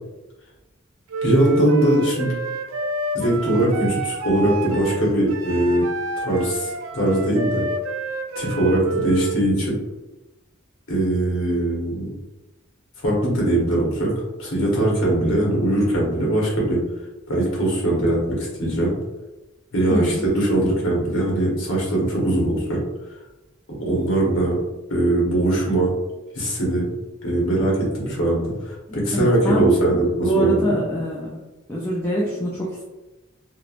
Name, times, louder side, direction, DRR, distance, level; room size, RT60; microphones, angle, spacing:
Wind instrument woodwind instrument, 1.1-9.4, right 2 dB, 80° right, 0.3 m, -29 dB
voice 1, 1.2-2.3 3.1-5.9 6.2-7.6 8.4-9.8 10.9-12.1 13.0-16.8 17.3-18.9 19.7-22.8 23.8-24.6 24.9-25.9 26.3-26.9 27.2-30.8, right 1 dB, 85° left, -4 dB, 1.0 m, -21 dB
voice 2, 19.9-20.2 28.9-31.3 31.7-32.8, right 1 dB, 10° left, -6 dB, 0.4 m, -25 dB
3.0 x 2.1 x 2.4 m, 1.1 s
head